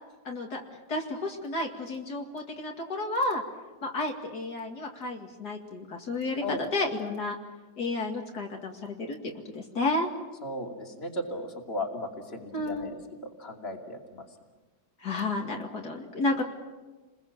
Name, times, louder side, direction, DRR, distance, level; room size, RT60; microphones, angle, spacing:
voice 1, 0.2-0.6 0.9-3.4 3.8-7.4 7.8-10.1 12.5-12.9 15.0-16.4, left 2 dB, 70° left, 1 dB, 2.8 m, -31 dB
voice 2, 10.4-14.3, left 1 dB, 35° left, 2 dB, 3.0 m, -36 dB
30.0 x 21.5 x 7.3 m, 1.2 s
omnidirectional pair, 1.8 m